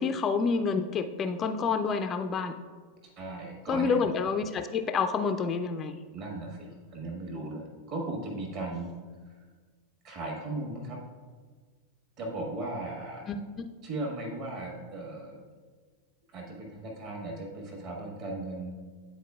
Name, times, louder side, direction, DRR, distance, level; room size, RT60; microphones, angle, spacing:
voice 1, 0.0-2.5 3.7-6.0 13.3-13.7, left 5 dB, 25° left, 8 dB, 0.3 m, -28 dB
voice 2, 3.2-4.0 6.1-8.9 10.0-11.0 12.2-13.2 13.8-15.4 16.3-18.7, right 2 dB, 40° right, 0 dB, 1.4 m, -37 dB
10.0 x 4.1 x 2.3 m, 1.5 s
figure-of-eight pair, 90°, 0 cm